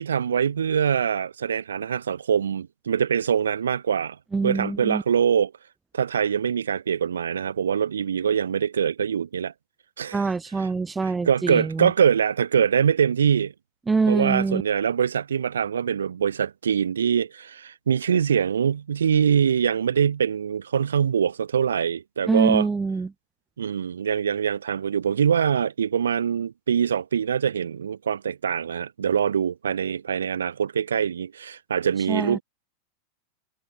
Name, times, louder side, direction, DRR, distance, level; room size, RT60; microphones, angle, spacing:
voice 1, 0.0-4.2 4.4-5.5 5.9-9.5 10.0-10.2 11.3-13.5 14.1-22.7 23.6-32.4, right 7 dB, 70° right, 6.5 m, -23 dB
voice 2, 4.3-5.0 10.1-11.9 13.9-14.6 22.3-23.1 32.1-32.4, right 4 dB, 10° right, 1.8 m, -24 dB
figure-of-eight pair, 90°, 0 cm